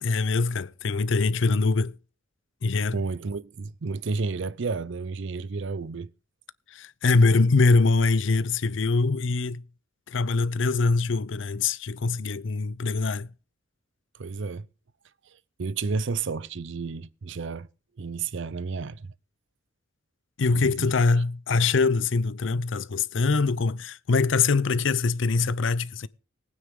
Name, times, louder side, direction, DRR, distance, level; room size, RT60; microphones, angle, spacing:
voice 1, 0.0-2.0 2.6-3.0 6.7-9.6 10.1-13.3 20.4-26.1, left 3 dB, 60° left, 0.6 m, -23 dB
voice 2, 2.9-6.1 14.2-14.7 15.6-17.7 18.0-19.1 20.5-20.9, right 4 dB, 60° right, 0.5 m, -31 dB
19.5 x 9.4 x 3.7 m
head